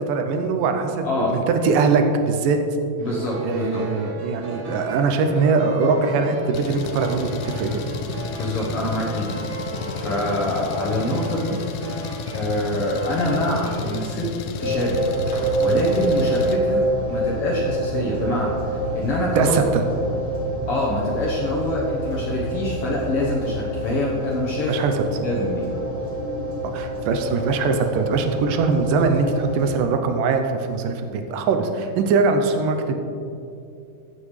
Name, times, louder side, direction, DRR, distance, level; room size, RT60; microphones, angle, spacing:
voice 1, 0.0-2.6 3.4-7.7 19.4-19.8 24.7-24.9 26.7-33.0, right 4 dB, 80° right, 6 dB, 2.3 m, -21 dB
voice 2, 1.0-1.4 3.0-3.9 8.3-12.0 12.3-14.3 14.6-15.0 15.6-19.6 20.7-24.9 25.2-25.7, left 1 dB, 60° left, -4 dB, 1.6 m, -25 dB
sound 1, 3.1-14.1, right 3 dB, 55° right, 2.2 m, -36 dB
Engine, 6.5-16.6, left 6 dB, 85° left, 2.3 m, -32 dB
sound 2, 14.6-29.8, right 1 dB, 30° right, 2.8 m, -26 dB
14.5 x 7.3 x 3.2 m, 2.6 s
omnidirectional pair, 3.9 m